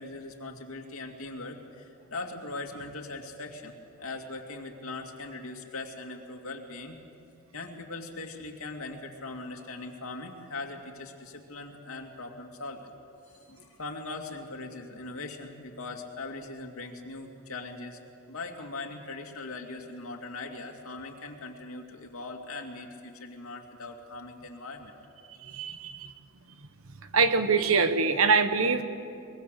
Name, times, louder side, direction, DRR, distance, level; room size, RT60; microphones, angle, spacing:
voice 1, 0.0-7.0 7.5-12.9 13.5-18.0 18.3-25.0, left 3 dB, 90° left, 2 dB, 2.5 m, -40 dB
voice 2, 25.4-26.1 27.1-28.8, right 4 dB, 80° right, 10 dB, 1.2 m, -24 dB
23.0 x 22.0 x 6.7 m, 2.5 s
head